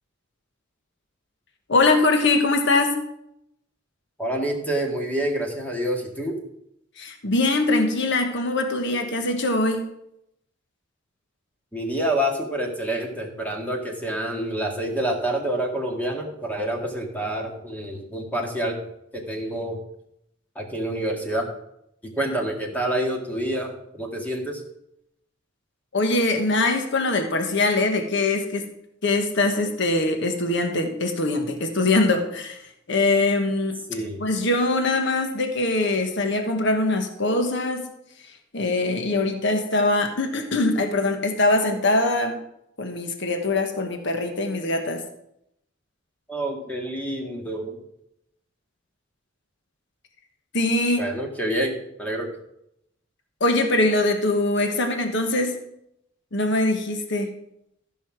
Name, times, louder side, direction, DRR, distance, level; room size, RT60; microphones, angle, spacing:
voice 1, 1.7-3.0 7.0-9.9 25.9-28.6 29.0-32.6 32.9-33.8 34.2-37.9 38.5-42.4 42.8-45.0 50.5-51.1 53.4-55.6 56.3-57.3, left 2 dB, 65° left, 5 dB, 1.3 m, -22 dB
voice 2, 4.2-6.4 11.7-18.8 19.1-19.8 20.6-21.5 22.0-24.6 33.9-34.2 46.3-47.8 51.0-52.3, right 1 dB, 10° left, 1 dB, 1.9 m, -27 dB
14.0 x 5.6 x 6.0 m, 0.79 s
head